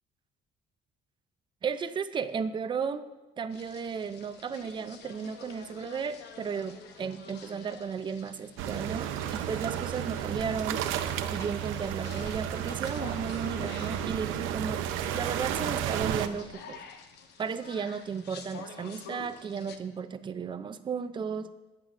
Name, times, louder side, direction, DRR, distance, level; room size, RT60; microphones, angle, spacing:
voice 1, 1.6-3.0 3.4-10.8 11.3-14.8 15.1-16.8 17.4-21.5, right 6 dB, 25° right, 11 dB, 0.4 m, -34 dB
sound 1, 3.5-19.8, left 6 dB, 55° left, 0.9 m, -49 dB
sound 2, 8.6-16.3, right 10 dB, 80° right, 0.7 m, -32 dB
14.0 x 9.6 x 2.5 m, 1.1 s
cardioid pair, 160°, 20 cm